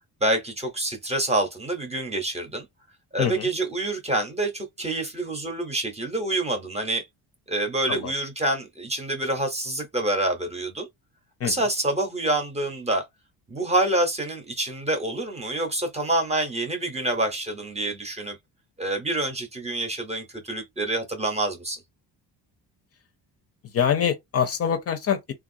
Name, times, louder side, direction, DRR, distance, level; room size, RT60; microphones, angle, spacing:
voice 1, 0.2-2.7 3.1-7.1 7.5-10.9 11.4-13.0 13.5-18.4 18.8-21.8, right 1 dB, 15° right, 0.7 m, -27 dB
voice 2, 3.2-3.5 7.9-8.1 11.4-11.7 23.6-25.3, left 8 dB, 40° left, 0.5 m, -25 dB
3.3 x 2.3 x 2.5 m
cardioid pair, 170°, 38 cm